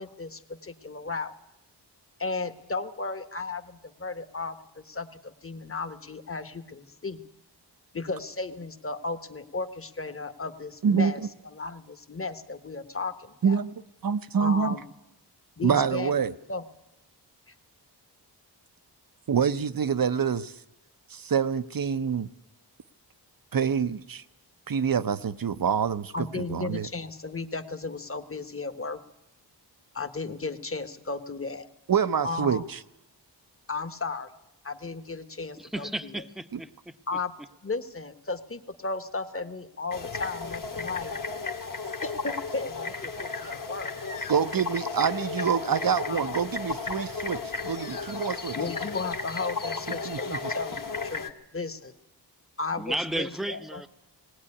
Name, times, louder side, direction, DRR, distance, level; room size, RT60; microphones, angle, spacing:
voice 1, 0.0-1.3 2.2-7.2 7.9-11.2 11.5-13.6 14.4-14.8 15.6-16.1 16.5-16.6 26.1-29.0 29.9-31.7 32.2-32.6 33.7-34.3 34.6-35.9 37.1-37.3 37.6-41.1 42.0-44.4 45.4-46.2 48.5-51.2 51.5-51.9 52.6-53.8, left 3 dB, 30° left, 11 dB, 1.2 m, -35 dB
voice 2, 10.8-11.1 13.4-14.8 15.6-16.3 19.3-20.5 21.1-22.3 23.5-24.2 24.7-26.9 31.9-32.8 44.3-48.6 50.0-50.4, right 7 dB, 55° right, 14 dB, 0.7 m, -26 dB
voice 3, 35.6-37.2 52.8-53.9, right 1 dB, ahead, 10 dB, 0.8 m, -34 dB
sound 1, 39.9-51.3, left 4 dB, 50° left, 1.5 m, -34 dB
19.0 x 18.0 x 9.8 m, 0.91 s
wide cardioid pair, 110°, 42 cm